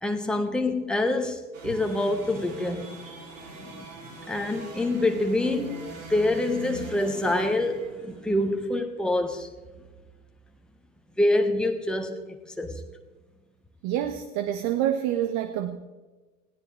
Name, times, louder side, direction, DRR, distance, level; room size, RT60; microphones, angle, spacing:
voice 1, 0.0-2.9 3.6-3.8 4.2-5.8 6.1-9.5 11.2-12.8, left 1 dB, ahead, 1.6 m, -26 dB
sound 1, 1.5-8.5, right 2 dB, 60° right, 3.5 m, -43 dB
voice 2, 13.8-15.8, right 11 dB, 40° right, 1.0 m, -27 dB
20.0 x 16.5 x 3.4 m
figure-of-eight pair, 80°, 43 cm